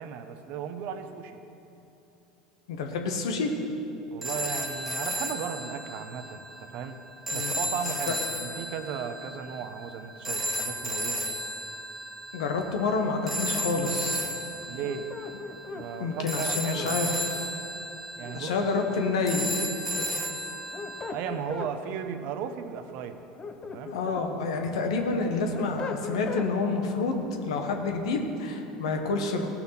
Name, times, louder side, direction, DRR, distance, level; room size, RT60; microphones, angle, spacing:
voice 1, 0.0-1.4 4.1-7.0 7.3-11.3 14.7-15.1 15.7-17.2 18.2-18.7 21.1-23.2 23.6-24.0, right 7 dB, 60° right, 9 dB, 0.9 m, -36 dB
voice 2, 2.7-3.5 7.3-7.6 12.3-14.2 16.0-17.1 18.3-19.4 20.0-20.1 23.8-29.5, left 3 dB, 75° left, 3 dB, 1.4 m, -28 dB
sound 1, 4.2-21.1, equal, 5° right, 1.7 m, -34 dB
sound 2, 14.8-16.9 18.2-19.3 20.5-21.7 23.1-24.3 24.7-26.5, left 5 dB, 30° left, 0.9 m, -39 dB
17.0 x 6.0 x 5.9 m, 2.9 s
hypercardioid pair, 80°, 3 cm